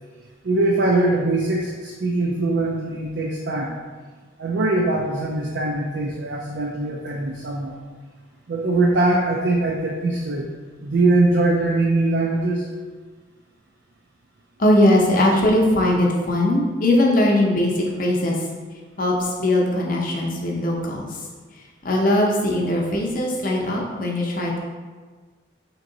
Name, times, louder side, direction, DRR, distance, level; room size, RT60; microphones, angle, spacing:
voice 1, 0.4-3.7 4.4-7.8 8.5-10.5 10.8-12.7, right 2 dB, 65° right, -1 dB, 0.4 m, -22 dB
voice 2, 14.6-18.4 19.0-21.2 21.8-24.6, left 1 dB, 45° left, -2 dB, 0.7 m, -20 dB
3.6 x 3.0 x 3.8 m, 1.4 s
head